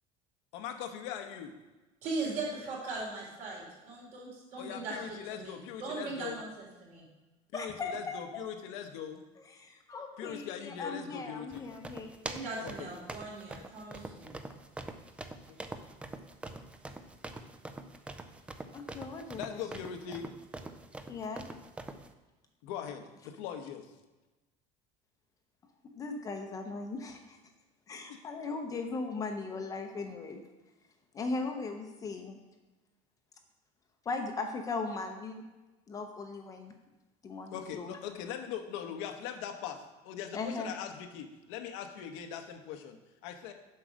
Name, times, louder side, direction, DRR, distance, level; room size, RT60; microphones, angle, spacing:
voice 1, 0.5-1.5 4.6-6.4 7.5-9.2 10.2-11.7 12.6-12.9 15.5-15.6 19.3-20.3 22.6-23.9 28.1-28.2 37.5-43.5, left 8 dB, 85° left, 5 dB, 1.0 m, -41 dB
voice 2, 2.0-7.0 12.2-14.3, right 3 dB, 55° right, -3 dB, 3.2 m, -39 dB
voice 3, 7.5-8.4 9.5-12.1 18.7-19.6 20.1-20.2 21.1-21.4 25.9-27.4 27.9-30.4 31.1-32.4 34.1-35.4 35.9-36.7 37.2-38.0 40.3-40.7, left 3 dB, 25° left, 4 dB, 0.7 m, -38 dB
sound 1, 11.5-22.1, right 2 dB, 10° right, 0.3 m, -44 dB
7.6 x 4.7 x 6.3 m, 1.1 s
cardioid pair, 160°, 15 cm